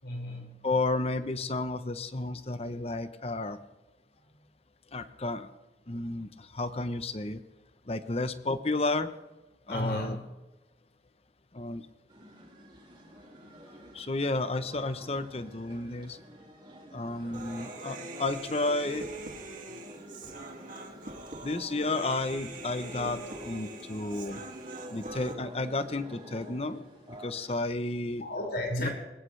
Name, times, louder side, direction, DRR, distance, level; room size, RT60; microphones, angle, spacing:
voice 1, 0.0-0.6 4.2-4.4 9.7-10.2 17.2-17.4 17.8-17.9 19.7-19.8 23.7-23.9 28.2-28.9, left 1 dB, 65° left, 0 dB, 5.7 m, -35 dB
voice 2, 0.6-3.6 4.9-5.5 5.9-7.4 7.9-9.1 9.7-10.2 11.5-11.8 13.9-16.2 16.9-19.1 21.4-24.4 24.9-26.8 27.1-28.2 28.8-28.9, left 2 dB, 35° left, 11 dB, 0.8 m, -32 dB
sound 1, 12.1-27.5, equal, 25° right, 5.0 m, -49 dB
Human voice, 17.3-25.3, right 2 dB, 50° right, 2.3 m, -43 dB
21.5 x 19.0 x 3.3 m, 1.1 s
head